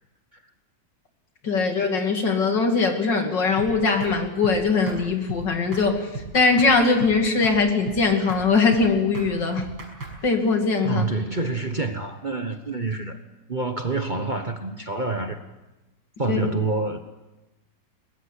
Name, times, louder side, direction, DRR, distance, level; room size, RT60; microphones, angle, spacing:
voice 1, 1.4-9.7 10.2-11.1 16.3-16.4, left 4 dB, 75° left, 4 dB, 3.3 m, -21 dB
sound 1, 3.6-3.7 4.0-4.2 4.4-4.6 4.9-5.0 5.3-5.4 5.7-5.9 6.1-6.7 7.0-7.2 7.4-7.6 7.9-8.0 8.3-8.4 8.7-8.9 9.1-9.3 9.6-10.2, right 3 dB, 65° right, 6.5 m, -35 dB
voice 2, 10.8-13.2 13.5-15.4 16.2-17.0, right 3 dB, 30° right, 5 dB, 1.2 m, -27 dB
22.0 x 20.0 x 8.4 m, 1.1 s
omnidirectional pair, 1.9 m